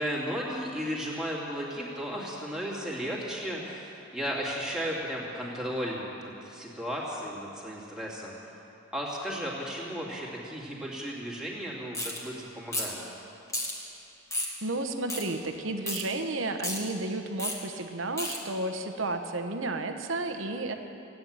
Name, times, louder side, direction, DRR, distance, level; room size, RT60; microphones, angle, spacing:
voice 1, 0.0-8.3 8.9-13.0, equal, 5° right, -5 dB, 2.7 m, -34 dB
sound 1, 11.9-12.2 12.7-13.0 13.5-13.7 14.3-14.5 15.1-15.2 15.9-16.0 16.6-16.8 17.4-17.6 18.2-18.4, left 1 dB, 15° left, 2.1 m, -32 dB
voice 2, 14.6-20.7, right 2 dB, 70° right, 7 dB, 1.1 m, -32 dB
16.5 x 9.5 x 8.9 m, 2.8 s
head